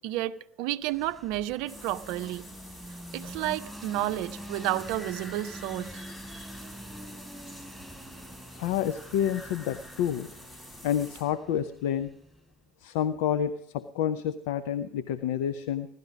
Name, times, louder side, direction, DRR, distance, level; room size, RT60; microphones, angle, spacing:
voice 1, 0.0-2.5 3.1-6.0, right 14 dB, 65° right, 0.5 m, -31 dB
sound 1, 0.8-12.6, right 1 dB, ahead, 4.4 m, -46 dB
sound 2, 1.7-11.2, left 1 dB, 30° left, 6.0 m, -47 dB
voice 2, 8.6-10.3 10.8-12.1 12.8-15.9, left 9 dB, 70° left, 0.5 m, -29 dB
16.5 x 12.0 x 5.2 m
hypercardioid pair, 60°, 0 cm